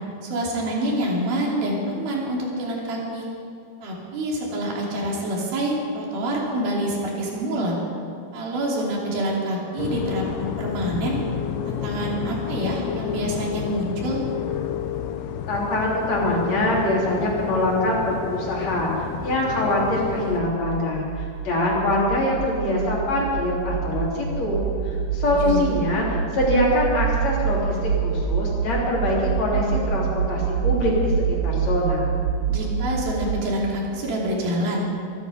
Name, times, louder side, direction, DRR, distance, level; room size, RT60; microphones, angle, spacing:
voice 1, 0.2-3.3 3.8-7.8 8.3-11.2 11.6-14.2 25.2-25.6 32.5-34.8, right 1 dB, 75° right, -3 dB, 4.7 m, -27 dB
sound 1, 9.8-20.4, left 8 dB, 75° left, 2.0 m, -30 dB
voice 2, 15.5-18.9 19.2-32.1, left 1 dB, 45° left, -4 dB, 4.5 m, -24 dB
sound 2, 18.6-33.9, right 7 dB, 45° right, 2.6 m, -27 dB
23.5 x 11.5 x 5.2 m, 2.6 s
omnidirectional pair, 4.3 m